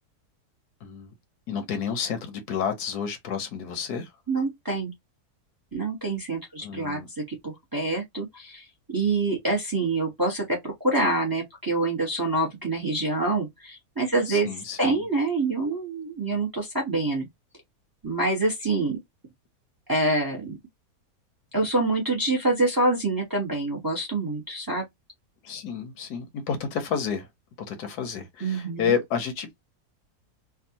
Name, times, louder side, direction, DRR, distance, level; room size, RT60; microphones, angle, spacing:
voice 1, 0.8-1.1 1.5-4.1 6.6-7.1 14.3-15.1 25.4-27.3 27.7-29.6, left 7 dB, 80° left, 1.4 m, -30 dB
voice 2, 4.3-4.9 5.7-17.3 18.0-19.0 19.9-20.6 21.5-24.8 28.4-28.9, right 2 dB, 15° right, 0.8 m, -26 dB
3.5 x 2.3 x 2.8 m
omnidirectional pair, 1.6 m